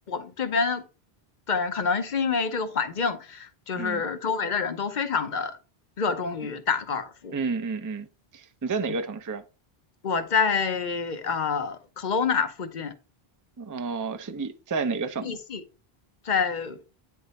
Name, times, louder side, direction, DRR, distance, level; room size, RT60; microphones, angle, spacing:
voice 1, 0.1-0.8 1.5-5.6 6.0-7.4 10.0-12.9 15.2-15.6 16.2-16.8, left 5 dB, 50° left, 0.9 m, -27 dB
voice 2, 7.3-8.1 8.3-9.4 13.6-15.4, right 4 dB, 25° right, 0.5 m, -30 dB
9.2 x 3.6 x 4.1 m
omnidirectional pair, 1.1 m